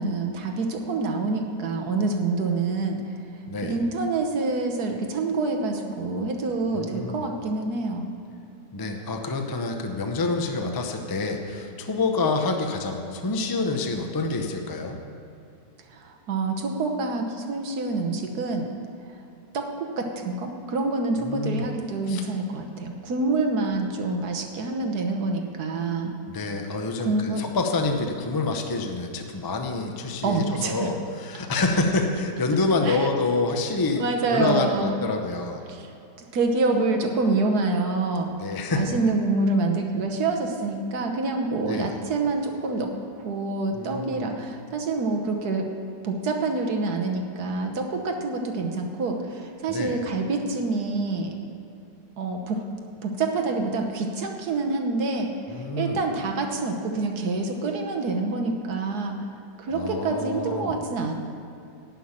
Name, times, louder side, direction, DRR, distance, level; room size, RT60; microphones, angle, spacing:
voice 1, 0.0-3.0 3.6-8.1 15.9-18.6 19.5-26.1 27.0-27.4 30.2-30.9 32.8-33.1 34.0-35.0 35.7-35.9 36.3-38.3 38.7-42.9 43.2-45.7 46.0-51.3 52.2-52.6 53.0-59.3 59.6-61.1, right 3 dB, 65° right, 3 dB, 1.5 m, -27 dB
voice 2, 3.5-3.8 6.7-7.2 8.7-15.0 21.2-21.7 22.1-22.2 26.3-34.0 34.3-35.6 38.3-39.0 41.6-42.0 43.7-44.3 49.7-50.0 55.5-56.0 59.7-60.8, left 3 dB, 30° left, 4 dB, 0.4 m, -27 dB
11.5 x 5.8 x 8.7 m, 2.7 s
omnidirectional pair, 1.9 m